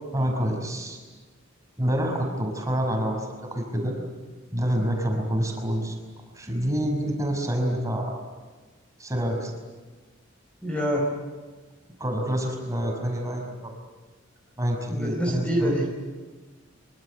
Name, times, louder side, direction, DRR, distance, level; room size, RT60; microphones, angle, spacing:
voice 1, 0.1-1.0 1.8-3.9 4.5-6.0 6.3-8.2 9.0-9.5 12.0-13.7 14.6-15.8, equal, 15° right, 2 dB, 5.7 m, -27 dB
voice 2, 10.6-11.1 14.9-16.0, equal, 5° left, 0 dB, 4.4 m, -26 dB
25.5 x 25.0 x 8.1 m, 1.3 s
head